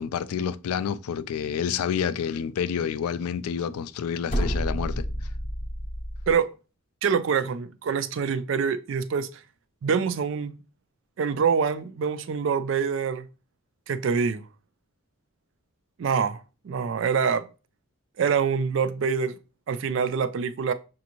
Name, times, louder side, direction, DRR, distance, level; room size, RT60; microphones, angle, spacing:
voice 1, 0.0-5.1, left 7 dB, 80° left, 0.3 m, -29 dB
sound 1, 4.3-6.4, equal, 30° left, 0.6 m, -29 dB
voice 2, 7.0-9.3 9.8-10.5 11.2-13.3 13.9-14.4 16.0-16.4 16.6-17.4 18.2-19.3 19.7-20.7, right 6 dB, 55° right, 0.3 m, -25 dB
6.0 x 2.5 x 2.9 m
head